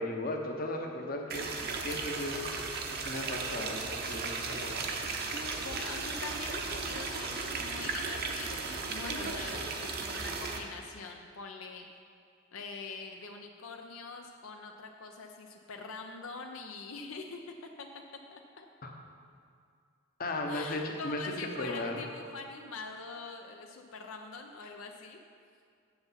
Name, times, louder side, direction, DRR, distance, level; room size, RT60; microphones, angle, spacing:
voice 1, 0.0-1.5 1.8-2.5 3.0-4.8 18.8-18.9 20.2-22.0, left 1 dB, 45° left, 2 dB, 0.9 m, -36 dB
sound 1, 1.3-10.6, right 4 dB, 50° right, 0.8 m, -36 dB
voice 2, 5.6-11.9 12.5-17.4 17.8-17.9 18.3-18.7 20.5-25.2, left 4 dB, 80° left, 3 dB, 0.6 m, -44 dB
7.7 x 6.9 x 5.6 m, 2.3 s
head